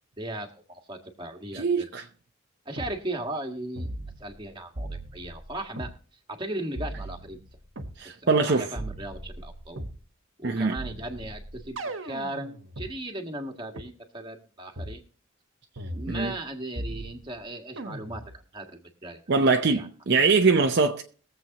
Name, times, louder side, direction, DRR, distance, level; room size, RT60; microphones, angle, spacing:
voice 1, 0.2-1.9 2.6-3.9 4.2-5.9 6.4-7.4 8.0-9.8 10.4-15.0 15.9-19.9, right 1 dB, 25° right, 1.6 m, -37 dB
voice 2, 1.5-2.1 8.0-8.7 10.4-10.7 16.1-16.3 19.3-21.0, right 4 dB, 55° right, 0.7 m, -22 dB
sound 1, 2.8-2.9 3.8-4.4 4.8-6.0 6.8-8.0 8.7-10.0 10.8-12.9 13.8-13.9 14.8-15.0 15.8-16.5 16.8-17.4 17.8-18.4, right 1 dB, 70° right, 1.3 m, -38 dB
22.0 x 7.7 x 2.9 m
head